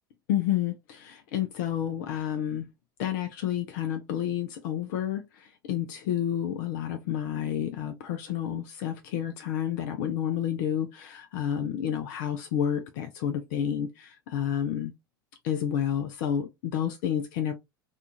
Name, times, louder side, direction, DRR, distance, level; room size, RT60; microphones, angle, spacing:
voice 1, 0.3-2.7 3.0-14.9 15.4-17.5, left 10 dB, 55° left, 0.4 m, -30 dB
2.6 x 2.3 x 2.7 m
figure-of-eight pair, 80°, 12 cm